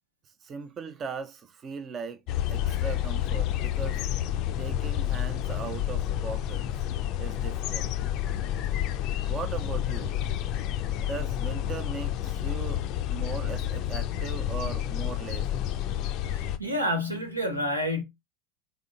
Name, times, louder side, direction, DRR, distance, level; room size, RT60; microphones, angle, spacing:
voice 1, 0.4-2.2 2.5-4.1 4.6-6.6 7.2-7.9 9.3-10.2 11.0-12.8 13.1-15.7, right 5 dB, 35° right, 0.5 m, -38 dB
sound 1, 2.3-16.6, left 11 dB, 50° left, 0.4 m, -29 dB
voice 2, 16.3-18.0, equal, 90° right, 0.8 m, -29 dB
3.7 x 3.4 x 2.4 m
figure-of-eight pair, 75°, 0 cm